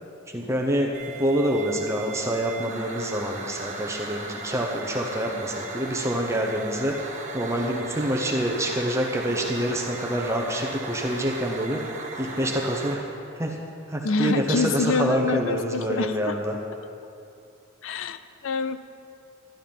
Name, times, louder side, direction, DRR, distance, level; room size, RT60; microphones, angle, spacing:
voice 1, 0.3-6.9 7.3-11.8 12.2-13.0 13.4-13.6 13.9-16.6, equal, 15° right, 0 dB, 0.9 m, -26 dB
sound 1, 0.9-12.9, right 3 dB, 35° right, 1.3 m, -37 dB
voice 2, 14.0-16.4 17.8-18.8, left 4 dB, 70° left, 12 dB, 0.5 m, -26 dB
11.5 x 11.0 x 5.4 m, 2.6 s
head